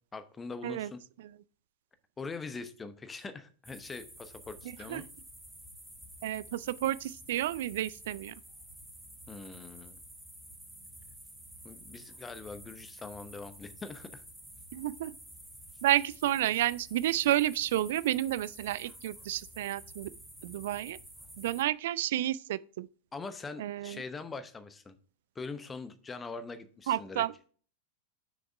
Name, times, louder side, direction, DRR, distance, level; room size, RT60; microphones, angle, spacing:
voice 1, 0.1-1.0 2.2-5.0 9.3-10.0 11.6-14.2 23.1-24.9 25.3-27.2, left 4 dB, 15° left, 0.9 m, -42 dB
sound 1, 3.6-21.6, right 1 dB, 5° right, 2.0 m, -50 dB
voice 2, 6.2-8.4 14.7-15.1 15.8-20.1 20.4-21.0 21.4-22.9 23.6-24.0 26.9-27.5, right 13 dB, 55° right, 0.3 m, -31 dB
7.4 x 6.4 x 3.4 m
figure-of-eight pair, 90°, 0 cm